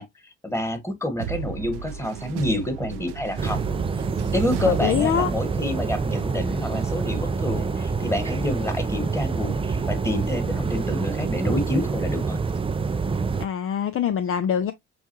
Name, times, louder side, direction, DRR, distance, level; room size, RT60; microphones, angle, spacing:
voice 1, 0.0-3.6 4.3-9.6 9.9-12.4, left 1 dB, 10° left, 1.5 m, -28 dB
sound 1, 1.2-5.7, right 9 dB, 75° right, 0.5 m, -34 dB
sound 2, 3.4-13.5, right 4 dB, 15° right, 0.4 m, -26 dB
voice 2, 4.8-5.3 13.4-14.7, left 8 dB, 40° left, 0.5 m, -24 dB
sound 3, 5.6-12.0, left 6 dB, 60° left, 1.6 m, -46 dB
6.8 x 2.3 x 3.0 m
hypercardioid pair, 50°, 33 cm